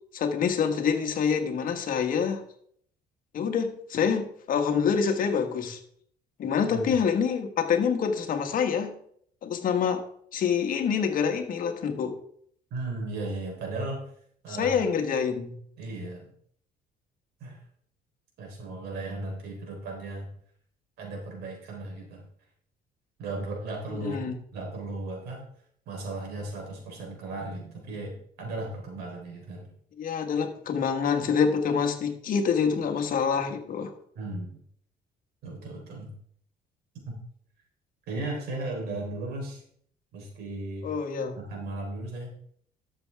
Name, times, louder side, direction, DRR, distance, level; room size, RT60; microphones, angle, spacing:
voice 1, 0.1-2.4 3.3-5.8 6.4-9.0 9.4-10.0 10.3-12.2 14.5-15.5 24.0-24.3 30.0-33.9 40.8-41.4, left 6 dB, 55° left, 5 dB, 1.7 m, -26 dB
voice 2, 12.7-14.0 14.4-14.8 15.8-16.3 17.4-17.6 18.4-20.3 21.0-22.3 23.2-24.2 24.5-25.4 25.9-29.7 34.2-34.6 35.4-36.1 37.1-37.2 38.1-39.6 40.1-40.9 41.3-42.3, right 2 dB, 75° right, 0 dB, 4.2 m, -36 dB
12.5 x 7.0 x 3.6 m, 0.63 s
cardioid pair, 110°, 17 cm